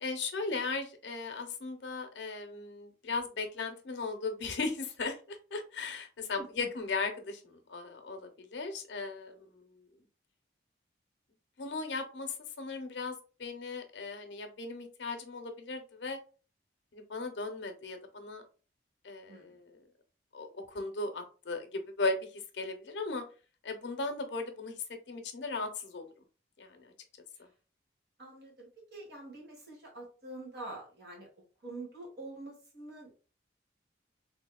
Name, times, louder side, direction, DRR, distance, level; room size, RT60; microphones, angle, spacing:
voice 1, 0.0-9.9 11.6-16.2 16.9-18.4 19.0-19.8 20.3-23.2 23.6-26.0 26.6-26.9 27.4-27.5, left 3 dB, 75° left, 6 dB, 0.6 m, -37 dB
voice 2, 6.4-6.7 19.3-19.5 28.2-31.3 31.6-33.1, right 2 dB, 60° right, -2 dB, 1.4 m, -46 dB
3.4 x 2.7 x 2.2 m, 0.37 s
head